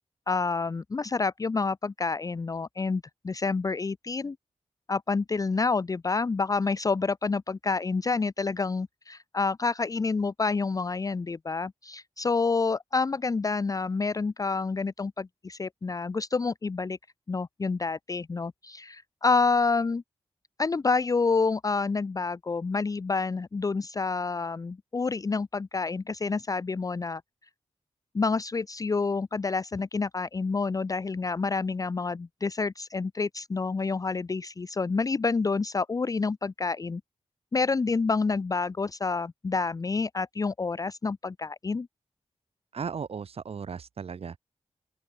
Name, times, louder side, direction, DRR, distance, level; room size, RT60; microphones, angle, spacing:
voice 1, 0.3-4.4 4.9-17.0 17.3-20.0 20.6-27.2 28.1-37.0 37.5-41.9, left 4 dB, 30° left, 0.5 m, -28 dB
voice 2, 42.7-44.4, right 6 dB, 60° right, 0.9 m, -36 dB
open air
wide cardioid pair, 120°, 11 cm